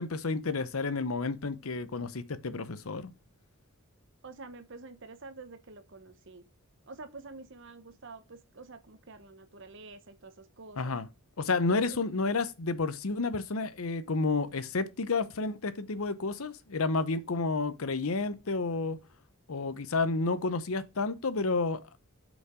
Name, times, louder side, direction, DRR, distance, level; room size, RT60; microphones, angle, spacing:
voice 1, 0.0-3.1 10.8-11.1 11.4-19.0 19.5-21.8, left 3 dB, 85° left, 0.8 m, -30 dB
voice 2, 4.2-6.5 6.8-11.0 11.7-12.0, right 3 dB, 60° right, 1.1 m, -48 dB
8.3 x 5.2 x 5.1 m
head